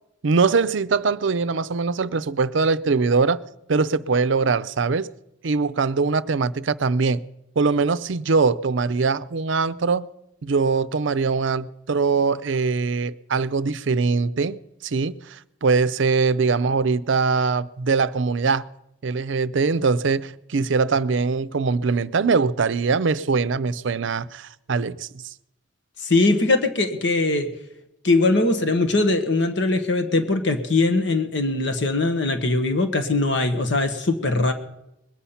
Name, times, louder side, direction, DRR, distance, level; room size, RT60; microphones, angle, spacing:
voice 1, 0.2-3.4 3.7-5.1 5.4-7.2 7.6-10.1 10.4-18.7 19.0-25.1, right 4 dB, 70° right, 0.5 m, -22 dB
voice 2, 26.0-27.5 28.0-34.5, left 2 dB, 60° left, 1.3 m, -21 dB
21.0 x 8.4 x 5.7 m
head